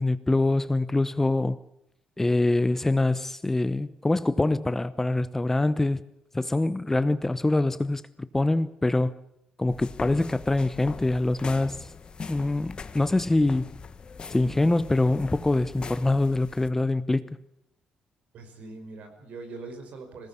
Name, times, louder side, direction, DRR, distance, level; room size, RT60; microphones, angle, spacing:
voice 1, 0.0-1.6 2.2-6.0 6.3-9.1 9.6-11.9 12.3-13.7 14.3-17.4, left 2 dB, 15° left, 0.8 m, -24 dB
sound 1, 9.7-16.7, left 5 dB, 35° left, 1.3 m, -41 dB
voice 2, 18.3-20.3, right 3 dB, 70° right, 5.4 m, -42 dB
21.0 x 18.0 x 8.4 m
cardioid pair, 105°, 3 cm